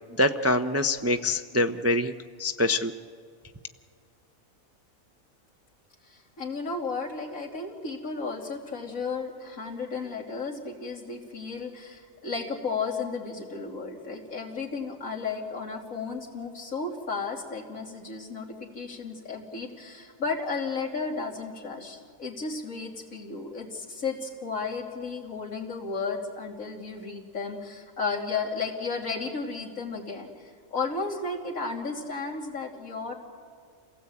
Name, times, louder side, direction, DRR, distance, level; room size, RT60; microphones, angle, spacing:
voice 1, 0.2-2.1 2.4-2.9, left 1 dB, 20° right, 7 dB, 0.4 m, -24 dB
voice 2, 6.0-33.1, left 4 dB, 80° left, -2 dB, 3.4 m, -34 dB
28.5 x 17.0 x 8.5 m, 2.1 s
omnidirectional pair, 1.4 m